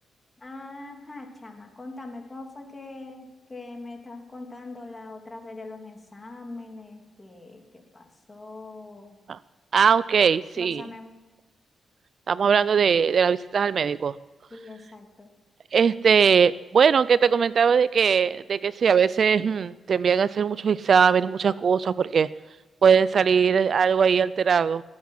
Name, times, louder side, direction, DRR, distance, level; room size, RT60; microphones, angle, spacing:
voice 1, 0.4-9.2 10.6-11.2 14.5-15.3, left 2 dB, 25° left, 2 dB, 3.0 m, -42 dB
voice 2, 9.7-10.8 12.3-14.1 15.7-22.3 22.8-24.8, right 6 dB, 60° right, 17 dB, 0.4 m, -20 dB
18.5 x 8.7 x 5.8 m, 1.2 s
cardioid pair, 85°, 0 cm